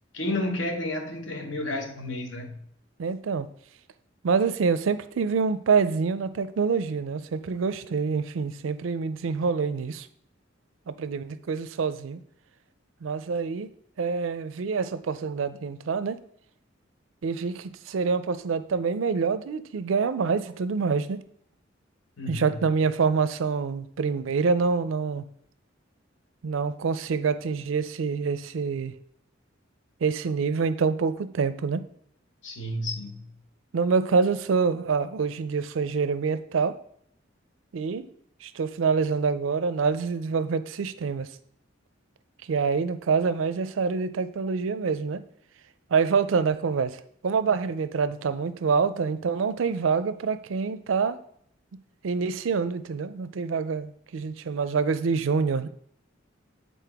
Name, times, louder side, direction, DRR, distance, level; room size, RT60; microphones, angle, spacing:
voice 1, 0.1-2.6 22.2-22.5 32.4-33.3, left 1 dB, 70° left, 1.0 m, -31 dB
voice 2, 3.0-3.5 4.2-10.1 10.9-12.2 13.0-13.7 14.0-16.2 17.2-21.2 22.3-25.2 26.4-28.9 30.0-31.8 33.7-36.7 37.7-38.1 38.4-41.3 42.5-45.2 45.9-51.2 52.0-55.7, right 5 dB, 80° right, 0.4 m, -26 dB
7.5 x 4.1 x 3.5 m
head